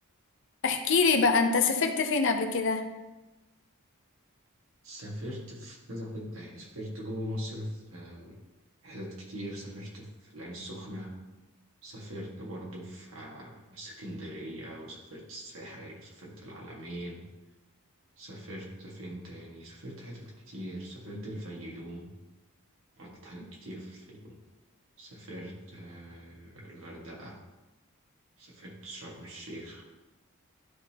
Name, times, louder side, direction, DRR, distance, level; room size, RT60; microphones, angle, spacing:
voice 1, 0.6-2.9, left 4 dB, 60° left, 6 dB, 0.7 m, -24 dB
voice 2, 4.8-8.4 8.8-11.1 11.8-17.2 18.2-22.1 23.0-24.4 25.0-27.4 28.4-29.8, equal, 65° right, -3 dB, 1.9 m, -41 dB
11.5 x 4.0 x 2.9 m, 1.0 s
head